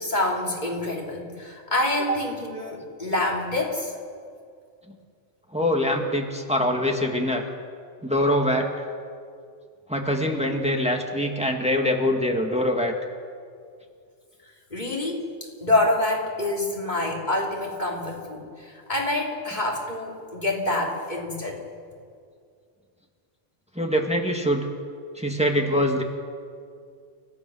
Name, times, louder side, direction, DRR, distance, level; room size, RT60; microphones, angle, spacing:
voice 1, 0.0-4.0 14.7-15.3 15.6-21.6, left 2 dB, 35° left, -1 dB, 3.3 m, -26 dB
voice 2, 5.5-7.4 8.0-8.7 9.9-12.9 23.8-24.7 25.2-26.0, left 1 dB, 5° right, 2 dB, 1.9 m, -23 dB
30.0 x 14.0 x 6.4 m, 2.3 s
omnidirectional pair, 1.3 m